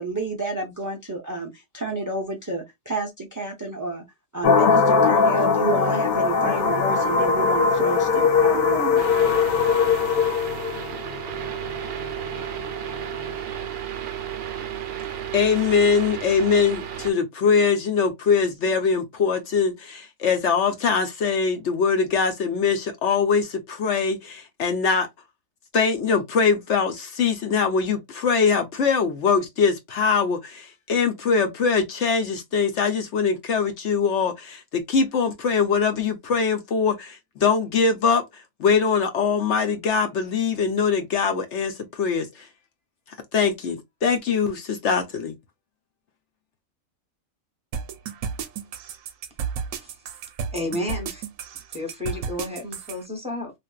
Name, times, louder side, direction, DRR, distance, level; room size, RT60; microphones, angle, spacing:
voice 1, 0.0-4.1 4.3-9.0, right 3 dB, 25° right, 0.4 m, -30 dB
sound 1, 4.4-13.3, left 5 dB, 90° left, 1.1 m, -20 dB
sound 2, 9.0-17.1, right 9 dB, 60° right, 0.7 m, -33 dB
voice 2, 15.3-25.1 25.7-38.2 38.6-42.5 43.3-45.4, left 5 dB, 65° left, 0.9 m, -22 dB
sound 3, 47.7-53.0, right 7 dB, 75° right, 1.0 m, -32 dB
voice 3, 50.5-51.2 51.7-53.5, left 2 dB, 5° right, 0.9 m, -31 dB
3.4 x 2.5 x 2.3 m
omnidirectional pair, 1.4 m